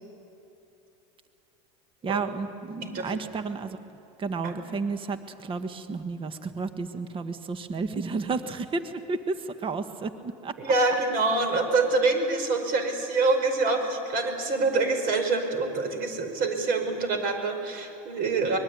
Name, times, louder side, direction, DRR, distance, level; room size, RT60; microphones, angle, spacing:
voice 1, 2.0-3.8 4.2-10.5, right 4 dB, 30° right, 9 dB, 1.5 m, -32 dB
voice 2, 2.8-3.1 4.4-4.6 10.6-18.6, right 3 dB, 50° right, 6 dB, 5.3 m, -26 dB
24.0 x 21.0 x 9.5 m, 2.9 s
supercardioid pair, 115°, 19 cm